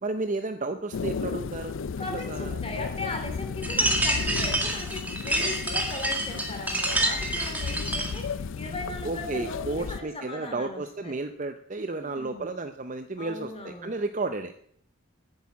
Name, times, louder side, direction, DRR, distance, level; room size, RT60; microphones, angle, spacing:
voice 1, 0.0-1.8 2.1-2.6 9.0-14.5, right 3 dB, 35° right, 8 dB, 0.6 m, -32 dB
sound 1, 0.9-10.0, left 5 dB, 70° left, 0.4 m, -34 dB
voice 2, 2.0-11.1 11.9-12.5 13.2-14.0, left 2 dB, 25° left, 4 dB, 2.6 m, -38 dB
sound 2, 3.6-8.2, right 1 dB, 10° right, 1.7 m, -27 dB
10.5 x 8.6 x 8.4 m, 0.65 s
head